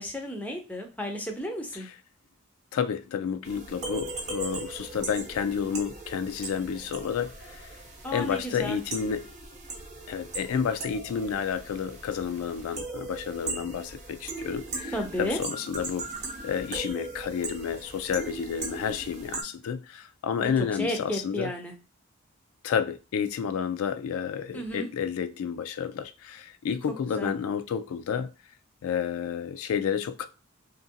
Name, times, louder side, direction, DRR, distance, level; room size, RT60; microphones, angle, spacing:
voice 1, 0.0-1.9 8.0-8.8 14.9-15.4 20.4-20.5 20.8-21.7 24.5-24.9 27.2-27.3, equal, 5° left, 0.4 m, -32 dB
voice 2, 2.7-7.7 8.1-9.2 10.1-16.1 16.4-21.5 22.6-28.3 28.8-30.3, left 7 dB, 75° left, 0.3 m, -30 dB
sound 1, 3.4-19.4, right 3 dB, 35° right, 0.7 m, -39 dB
2.8 x 2.6 x 2.7 m
head